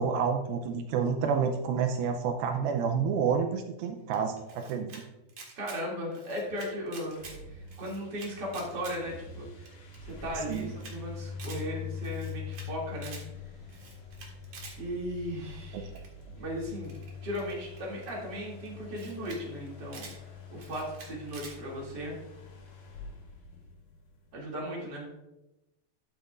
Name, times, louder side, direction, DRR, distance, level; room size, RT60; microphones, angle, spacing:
voice 1, 0.0-5.0 10.5-10.7 15.7-15.8, right 6 dB, 85° right, 6 dB, 2.2 m, -29 dB
Camera, 4.1-5.0 5.3-5.8 6.1-7.4 7.7-9.0 9.3-9.4 9.7-9.8 9.9-10.0 10.3-10.9 11.2-11.6 12.0-12.7 13.0-13.2 13.7-14.8 16.0-16.2 16.8-18.1 18.7-18.8 18.9-19.4 19.7-20.2 20.6-21.6, right 4 dB, 50° right, 2.3 m, -47 dB
voice 2, 5.6-9.7 10.0-13.2 14.8-15.9 16.4-16.9 17.2-22.2 24.3-25.1, equal, 30° right, -3 dB, 2.5 m, -37 dB
sound 1, 6.9-24.4, left 5 dB, 60° left, 3.1 m, -44 dB
12.5 x 8.0 x 2.5 m, 0.97 s
omnidirectional pair, 4.8 m